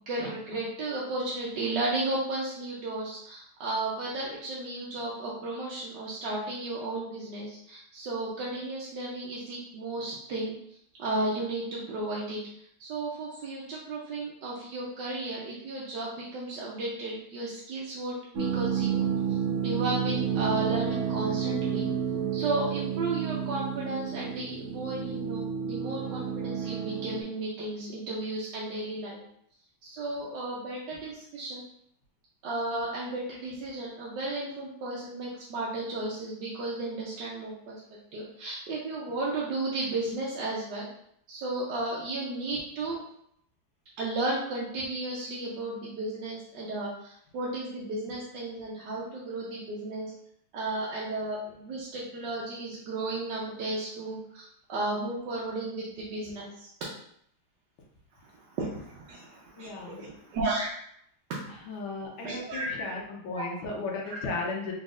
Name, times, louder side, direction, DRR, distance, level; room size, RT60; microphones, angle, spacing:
voice 1, 0.1-10.5 11.0-12.4 12.8-18.2 18.5-19.0 19.6-21.8 22.3-29.2 29.8-31.6 32.4-37.8 38.1-40.9 41.3-43.0 44.0-46.9 47.3-50.1 50.5-54.4 54.7-56.7 58.5-60.7 62.2-62.9 63.3-63.4 64.2-64.3, right 2 dB, 65° right, -5 dB, 1.2 m, -34 dB
sound 1, 18.3-27.2, right 8 dB, 85° right, 0.6 m, -30 dB
voice 2, 59.6-60.1 61.7-64.7, left 3 dB, 75° left, -1 dB, 1.6 m, -35 dB
4.0 x 3.9 x 2.4 m, 0.70 s
omnidirectional pair, 2.2 m